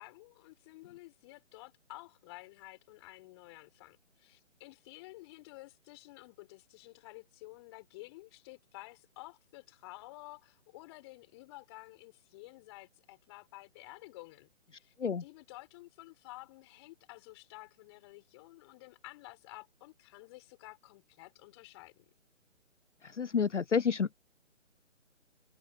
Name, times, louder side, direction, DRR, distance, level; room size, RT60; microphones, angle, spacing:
voice 1, 0.0-14.9 15.2-22.0, left 21 dB, 20° left, 6.3 m, -52 dB
voice 2, 23.0-24.1, left 6 dB, 65° left, 0.8 m, -30 dB
figure-of-eight pair, 145°, 38 cm